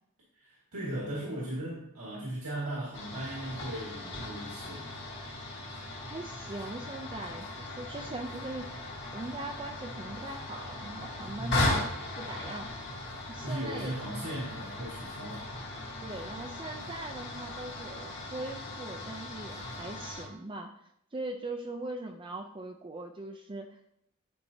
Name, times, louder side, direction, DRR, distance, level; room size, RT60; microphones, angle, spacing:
voice 1, 0.3-4.9 11.4-11.8 13.4-15.5, right 1 dB, 90° right, -5 dB, 1.8 m, -37 dB
sound 1, 2.9-20.2, left 2 dB, 50° left, 1.9 m, -38 dB
voice 2, 6.0-7.5 7.8-8.7 9.1-11.7 12.2-12.7 13.3-14.0 16.0-20.7 21.1-23.8, right 2 dB, 25° right, 3 dB, 0.4 m, -40 dB
10.5 x 4.5 x 2.7 m, 0.75 s
head